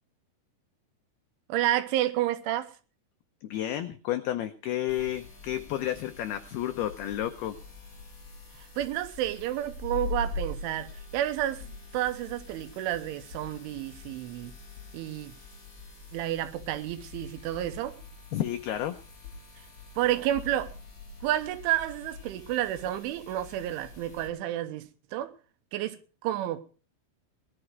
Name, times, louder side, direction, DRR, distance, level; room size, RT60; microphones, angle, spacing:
voice 1, 1.5-2.7 8.8-11.6 11.9-14.6 14.9-15.3 16.1-17.9 20.0-20.7 21.2-25.3 25.7-26.6, right 13 dB, 85° right, 3.4 m, -30 dB
voice 2, 3.4-7.6 18.3-19.0, left 12 dB, 90° left, 2.2 m, -31 dB
sound 1, 4.9-24.3, left 3 dB, 25° left, 4.3 m, -43 dB
19.0 x 11.5 x 4.5 m
omnidirectional pair, 5.6 m